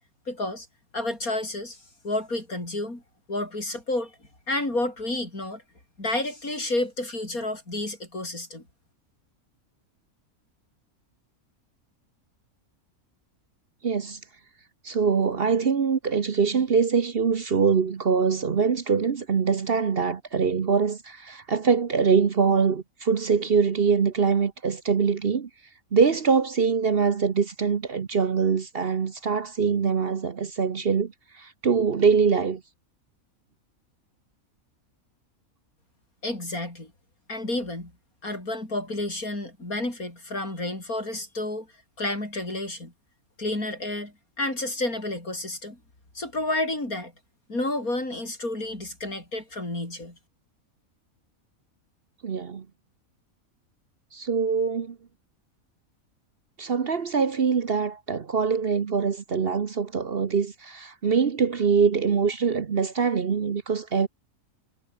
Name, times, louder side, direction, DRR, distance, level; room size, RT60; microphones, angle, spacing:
voice 1, 0.3-0.7 0.9-1.8 2.0-3.0 3.3-4.1 4.5-5.6 6.0-8.6 36.2-36.9 37.3-37.9 38.2-41.7 42.0-42.9 43.4-45.8 46.1-47.1 47.5-50.1, left 2 dB, 80° left, 8.0 m, -30 dB
voice 2, 13.8-14.2 14.8-25.5 25.9-32.6 52.2-52.7 54.1-55.0 56.6-64.1, right 5 dB, 45° right, 1.1 m, -23 dB
omnidirectional pair, 1.5 m